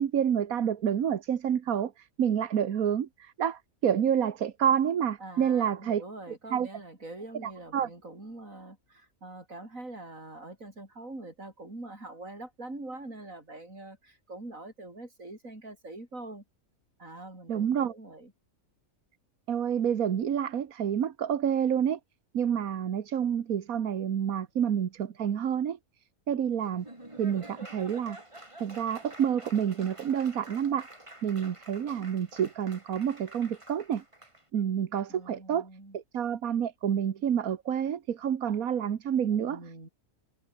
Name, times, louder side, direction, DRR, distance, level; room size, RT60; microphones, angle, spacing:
voice 1, 0.0-6.0 6.5-6.7 7.4-7.9 17.5-17.9 19.5-22.0 22.3-25.8 26.3-26.8 27.2-28.2 28.6-30.9 31.2-34.0 34.5-35.7 35.9-39.6, right 8 dB, 85° right, 1.6 m, -28 dB
voice 2, 5.2-16.4 17.0-18.3 35.1-36.0 39.3-39.9, right 2 dB, 70° right, 6.6 m, -44 dB
Laughter / Applause, 26.6-34.4, right 1 dB, 20° right, 4.2 m, -49 dB
omnidirectional pair, 1.4 m